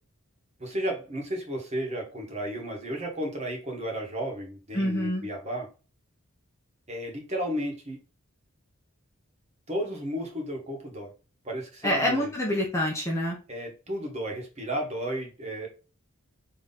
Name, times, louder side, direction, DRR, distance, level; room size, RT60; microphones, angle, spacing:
voice 1, 0.6-5.7 6.9-8.0 9.7-11.1 11.4-12.3 13.5-15.7, equal, 30° right, 0 dB, 1.3 m, -33 dB
voice 2, 4.7-5.3 11.8-13.4, left 1 dB, 10° left, -2 dB, 0.8 m, -26 dB
3.8 x 3.1 x 4.1 m, 0.33 s
head